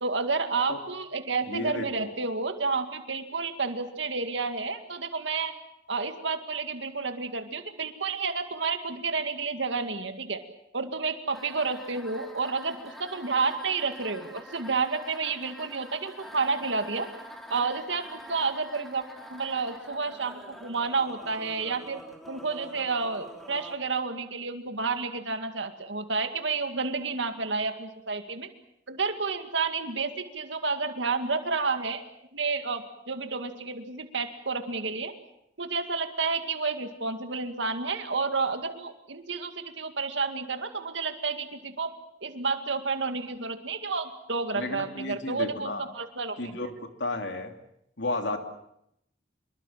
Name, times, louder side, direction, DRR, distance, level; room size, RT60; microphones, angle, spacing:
voice 1, 0.0-5.5 5.9-10.4 10.7-17.1 17.5-22.0 22.3-28.5 28.9-32.0 32.3-35.1 35.6-41.9 42.2-46.7, right 4 dB, 80° right, 7 dB, 2.2 m, -30 dB
voice 2, 1.5-2.2 44.5-45.9 46.4-47.5 48.0-48.4, left 2 dB, 70° left, 5 dB, 2.9 m, -33 dB
sound 1, 11.3-23.8, equal, ahead, 3.1 m, -46 dB
25.5 x 22.5 x 7.4 m, 0.78 s
head